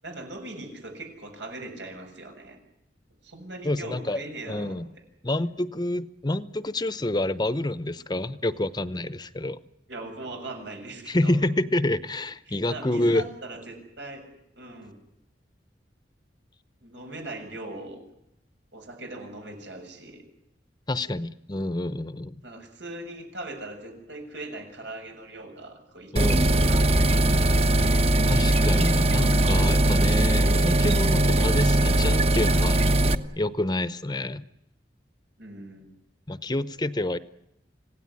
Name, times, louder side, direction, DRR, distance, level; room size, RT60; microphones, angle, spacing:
voice 1, 0.0-2.6 3.2-4.8 9.9-11.4 12.5-14.2 14.5-15.0 16.8-18.0 18.7-20.2 22.4-26.6 35.4-35.9, right 2 dB, 90° right, 4 dB, 7.2 m, -40 dB
voice 2, 3.6-4.2 4.5-4.9 5.2-9.6 11.1-13.2 20.9-22.4 26.1-26.5 28.3-33.1 33.4-34.4 36.3-37.2, left 1 dB, 25° left, 14 dB, 0.8 m, -28 dB
sound 1, 26.2-33.2, right 1 dB, 35° right, 1.1 m, -20 dB
26.5 x 17.5 x 9.8 m, 0.85 s
head